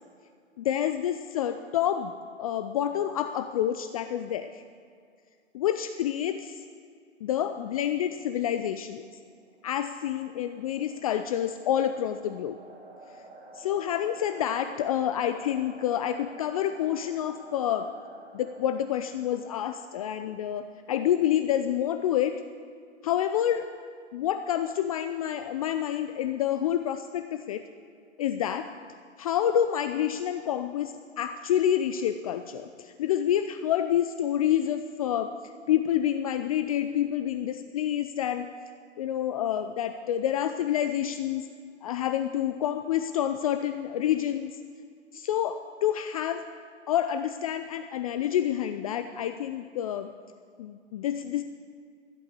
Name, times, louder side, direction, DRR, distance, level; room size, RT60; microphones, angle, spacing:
voice 1, 0.6-2.1 2.4-4.6 5.5-6.6 7.2-9.0 9.6-12.6 13.5-17.9 18.3-22.4 23.0-23.6 24.1-27.6 28.2-28.7 29.2-35.3 35.7-38.5 39.0-41.5 41.8-44.6 45.1-46.4 46.9-50.1 50.6-51.4, left 10 dB, 30° left, 9 dB, 0.4 m, -28 dB
sound 1, 9.4-20.3, right 2 dB, 20° right, 2.3 m, -50 dB
14.0 x 8.4 x 8.0 m, 2.2 s
figure-of-eight pair, 120°, 36 cm